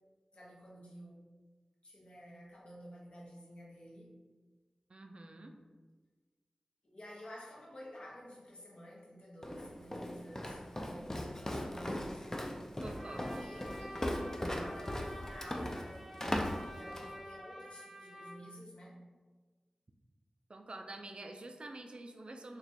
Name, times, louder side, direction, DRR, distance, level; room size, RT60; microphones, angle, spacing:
voice 1, 0.3-1.2 1.8-4.2 6.8-11.3 11.6-19.0, equal, 55° left, -4 dB, 0.9 m, -52 dB
voice 2, 4.9-5.5 12.8-13.3 20.5-22.6, right 2 dB, 50° right, 4 dB, 0.4 m, -47 dB
Walk footsteps, 9.4-17.2, left 1 dB, 20° left, 0.4 m, -38 dB
Trumpet, 12.9-18.4, equal, 10° right, 0.8 m, -49 dB
3.0 x 2.3 x 4.2 m, 1.3 s
cardioid pair, 45°, 2 cm